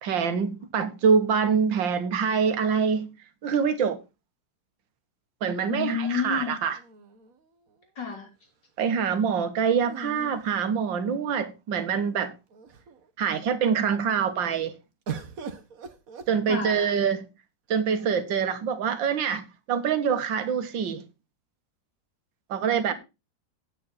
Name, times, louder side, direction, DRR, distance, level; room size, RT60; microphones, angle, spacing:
voice 1, 0.0-3.1 3.4-4.0 5.4-6.8 8.8-12.3 13.2-14.8 16.3-17.2 17.7-21.0 22.5-22.9, right 6 dB, 75° right, 2.0 m, -25 dB
voice 2, 5.7-6.6 8.0-8.3 16.5-16.9 22.9-23.0, left 6 dB, 65° left, 3.5 m, -30 dB
sound 1, 6.7-7.8 9.8-11.4 12.1-12.2 12.5-13.1 15.1-16.9 17.9-18.6, right 5 dB, 50° right, 1.6 m, -41 dB
9.2 x 8.8 x 4.1 m
omnidirectional pair, 2.1 m